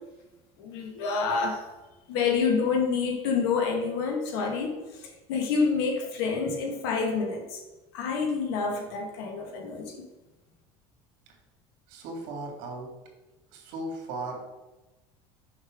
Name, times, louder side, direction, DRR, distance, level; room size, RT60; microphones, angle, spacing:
voice 1, 0.6-1.6 2.1-7.6 7.9-10.0, left 5 dB, 80° left, 2 dB, 1.7 m, -28 dB
voice 2, 11.9-12.9 13.5-14.4, right 2 dB, 70° right, 1 dB, 2.2 m, -37 dB
6.4 x 5.8 x 3.6 m, 1.1 s
cardioid pair, 130°, 13 cm